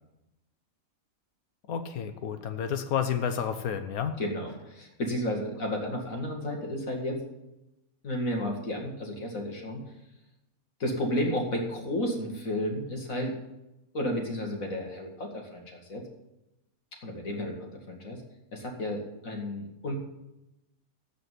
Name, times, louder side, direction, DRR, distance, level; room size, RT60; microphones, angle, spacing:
voice 1, 1.7-4.1, left 8 dB, 90° left, 8 dB, 1.3 m, -30 dB
voice 2, 4.2-7.2 8.0-9.8 10.8-13.4 13.9-16.0 17.0-18.2 18.5-19.9, left 1 dB, 70° left, 1 dB, 2.5 m, -32 dB
14.5 x 5.1 x 9.2 m, 0.94 s
omnidirectional pair, 1.5 m